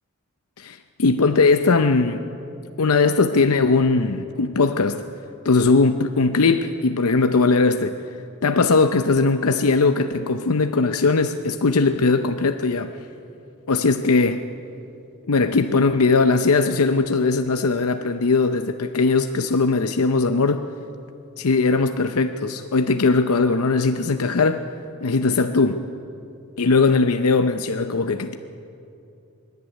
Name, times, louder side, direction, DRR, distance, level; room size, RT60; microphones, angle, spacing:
voice 1, 0.6-2.3 2.8-5.0 5.4-8.1 8.4-12.9 13.7-14.4 15.3-20.6 21.4-24.6 25.0-25.8 26.6-28.3, left 3 dB, 80° left, 8 dB, 0.7 m, -19 dB
24.5 x 11.0 x 9.7 m, 2.7 s
head